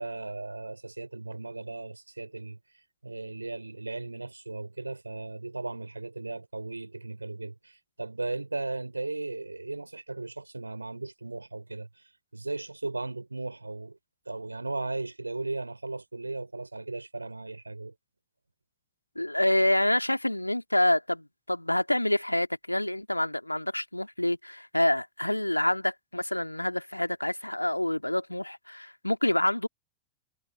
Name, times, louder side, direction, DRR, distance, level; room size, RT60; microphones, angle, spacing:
voice 1, 0.0-2.6 3.0-14.0 14.3-17.9, right 2 dB, 80° right, 3.8 m, -36 dB
voice 2, 19.2-29.7, left 1 dB, 85° left, 2.0 m, -27 dB
figure-of-eight pair, 90°, 0 cm